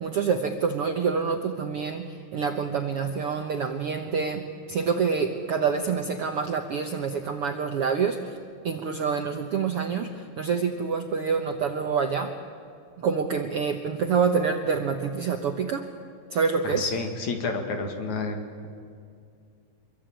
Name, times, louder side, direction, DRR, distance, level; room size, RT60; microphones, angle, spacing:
voice 1, 0.0-4.4 4.7-8.2 8.6-10.1 10.4-12.3 13.0-15.8 16.3-16.8, right 6 dB, 65° right, 5 dB, 1.5 m, -26 dB
voice 2, 16.6-18.7, left 3 dB, 60° left, 5 dB, 3.4 m, -30 dB
26.0 x 23.0 x 8.9 m, 2.3 s
omnidirectional pair, 4.0 m